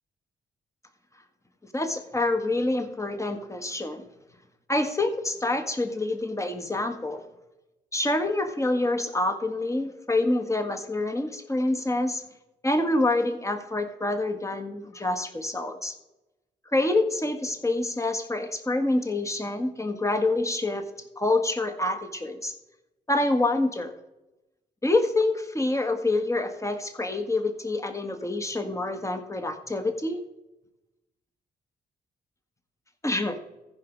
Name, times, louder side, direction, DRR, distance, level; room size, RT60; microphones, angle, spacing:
voice 1, 1.7-4.0 4.7-7.2 7.9-12.2 12.6-15.9 16.7-20.9 21.2-22.5 23.1-23.9 24.8-30.2 33.0-33.3, left 2 dB, 15° left, 6 dB, 1.7 m, -26 dB
15.0 x 5.4 x 4.7 m, 0.97 s
supercardioid pair, 45°, 18 cm